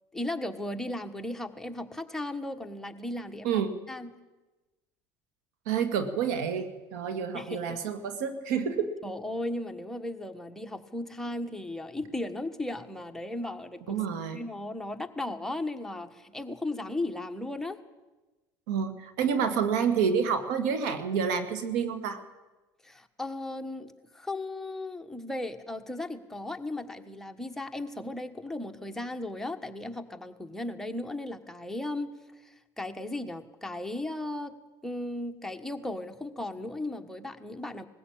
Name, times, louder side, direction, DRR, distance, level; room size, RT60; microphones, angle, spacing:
voice 1, 0.1-4.2 7.3-7.8 9.0-14.0 14.3-17.8 22.8-34.5 34.8-37.8, left 1 dB, 5° left, 5 dB, 1.4 m, -36 dB
voice 2, 5.7-8.9 13.9-14.4 18.7-22.2, right 7 dB, 90° right, 9 dB, 2.1 m, -28 dB
20.0 x 15.5 x 8.9 m, 1.1 s
supercardioid pair, 100°, 10 cm